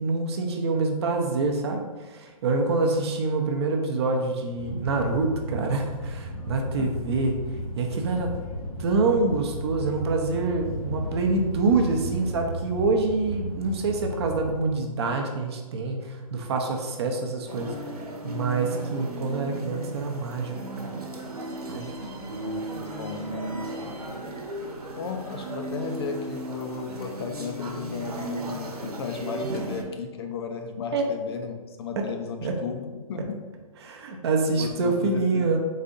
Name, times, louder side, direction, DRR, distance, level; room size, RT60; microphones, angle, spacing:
voice 1, 0.0-7.4 7.8-8.4 8.8-17.7 18.2-21.0 21.7-21.9 30.9-31.0 32.0-32.1 32.4-32.5 33.8-35.6, right 3 dB, 45° right, 3 dB, 0.6 m, -26 dB
sound 1, 4.6-14.5, equal, 75° left, 1.2 m, -34 dB
sound 2, 17.5-29.8, right 1 dB, 85° right, 1.0 m, -35 dB
voice 2, 22.3-22.7 22.9-24.2 25.0-33.4 34.5-35.6, left 6 dB, 45° left, 5 dB, 0.5 m, -35 dB
4.0 x 2.5 x 3.8 m, 1.3 s
hypercardioid pair, 145°, 19 cm